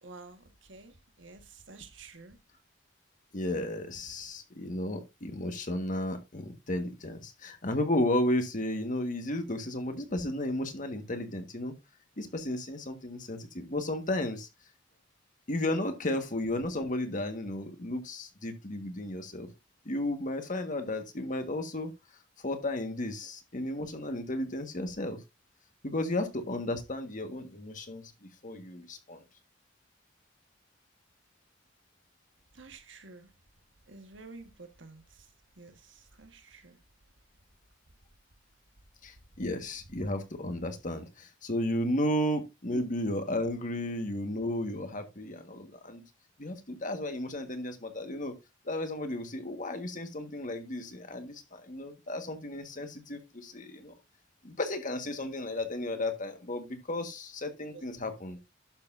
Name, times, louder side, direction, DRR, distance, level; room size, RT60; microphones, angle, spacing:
voice 1, 0.0-2.4 32.5-33.3 33.9-35.3 35.6-36.8 42.7-42.8 57.7-57.8, right 3 dB, 75° right, 1.5 m, -50 dB
voice 2, 3.3-11.8 12.2-14.5 15.5-19.5 19.8-21.9 22.4-25.2 25.8-29.2 39.0-46.0 46.4-48.4 48.6-53.9 54.4-58.5, left 1 dB, 45° left, 1.5 m, -33 dB
11.5 x 6.8 x 2.6 m
head